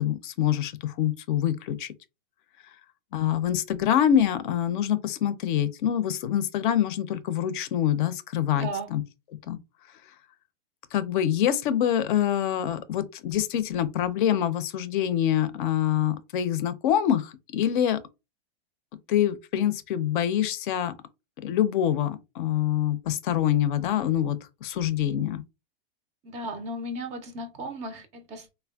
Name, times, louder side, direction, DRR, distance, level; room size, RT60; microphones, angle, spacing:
voice 1, 0.0-1.9 3.1-9.0 9.5-9.6 10.9-18.0 19.1-20.9 21.4-25.4, left 10 dB, 60° left, 0.5 m, -25 dB
voice 2, 8.5-8.9 26.2-28.5, right 1 dB, 25° right, 0.4 m, -35 dB
3.3 x 2.1 x 2.2 m
hypercardioid pair, 125°, 29 cm